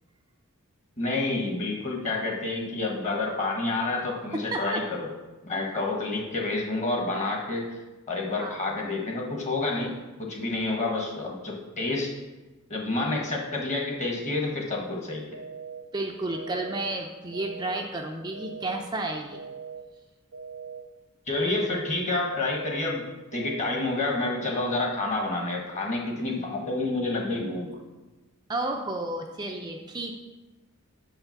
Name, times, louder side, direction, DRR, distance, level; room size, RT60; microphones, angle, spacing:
voice 1, 1.0-5.1 5.4-7.8 8.1-12.1 12.7-15.4 21.3-23.0 23.3-27.7, left 2 dB, 35° left, 0 dB, 1.4 m, -29 dB
voice 2, 4.3-4.8 8.4-8.6 15.9-19.4 28.5-30.2, right 2 dB, 20° right, 1 dB, 0.5 m, -32 dB
sound 1, 15.3-15.8 16.3-16.8 17.3-17.8 18.3-18.8 19.3-19.8 20.3-20.8 21.3-21.8 22.3-22.8 23.3-23.8 24.3-24.8, right 6 dB, 70° right, 0.6 m, -40 dB
6.3 x 5.6 x 5.9 m, 1.1 s
head